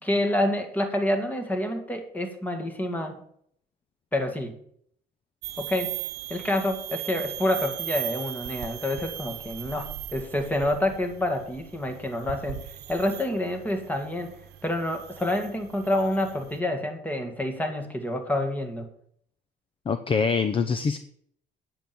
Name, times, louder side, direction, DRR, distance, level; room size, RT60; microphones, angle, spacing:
voice 1, 0.0-3.2 4.1-4.5 5.6-6.0 6.3-12.6 12.9-14.4 14.6-18.9, left 1 dB, 10° left, 5 dB, 2.1 m, -28 dB
sound 1, 5.4-16.6, right 13 dB, 75° right, 1.0 m, -38 dB
voice 2, 19.9-21.0, left 5 dB, 30° left, 11 dB, 0.7 m, -24 dB
9.2 x 7.7 x 7.2 m, 0.67 s
cardioid pair, 110°, 17 cm